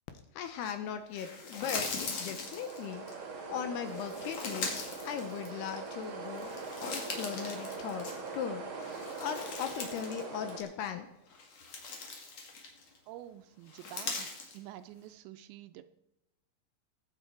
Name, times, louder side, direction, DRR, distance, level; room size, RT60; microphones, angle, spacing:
voice 1, 0.3-3.1 3.5-8.7 9.2-11.1, left 8 dB, 80° left, 8 dB, 2.6 m, -38 dB
sound 1, 1.1-3.1 3.8-5.9 6.3-8.4 8.8-10.2 10.5-10.7 11.3-13.0 13.7-14.6, left 4 dB, 45° left, 2.6 m, -40 dB
sound 2, 2.0-10.6, right 4 dB, 45° right, 1.7 m, -42 dB
voice 2, 13.1-14.3 14.5-15.8, right 13 dB, 80° right, 11 dB, 2.7 m, -48 dB
20.0 x 8.7 x 4.6 m, 0.87 s
omnidirectional pair, 5.4 m